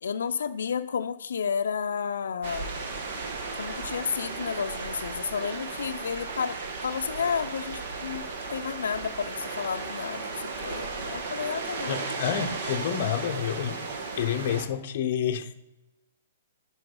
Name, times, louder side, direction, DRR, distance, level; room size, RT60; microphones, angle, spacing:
voice 1, 0.0-2.8 3.5-12.0, left 6 dB, 90° left, 9 dB, 0.5 m, -32 dB
sound 1, 2.4-14.7, right 4 dB, 50° right, 1.3 m, -35 dB
voice 2, 11.9-13.8 14.2-15.5, left 9 dB, 40° left, 7 dB, 0.7 m, -29 dB
9.9 x 4.8 x 5.3 m, 1.0 s
hypercardioid pair, 170°, 0 cm